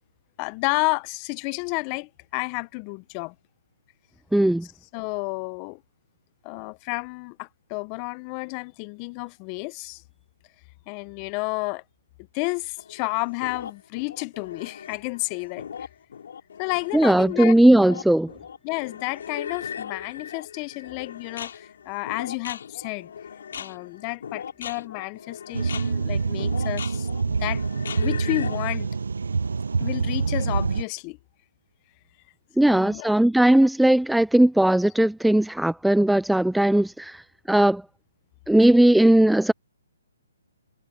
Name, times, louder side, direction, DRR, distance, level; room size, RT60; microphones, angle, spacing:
voice 1, 0.4-3.3 4.6-5.8 6.4-10.0 10.9-11.8 12.3-15.9 16.6-17.5 18.6-23.1 23.6-27.6 27.9-28.9 29.8-31.2 32.6-33.1, left 29 dB, 30° left, 0.8 m, -31 dB
voice 2, 4.3-4.7 16.9-18.3 32.6-37.2 37.5-37.8 38.5-39.5, right 1 dB, ahead, 0.4 m, -18 dB
sound 1, 12.8-28.7, left 7 dB, 65° left, 6.5 m, -39 dB
sound 2, 25.5-30.8, right 4 dB, 80° right, 0.7 m, -26 dB
hypercardioid pair, 145°, 0 cm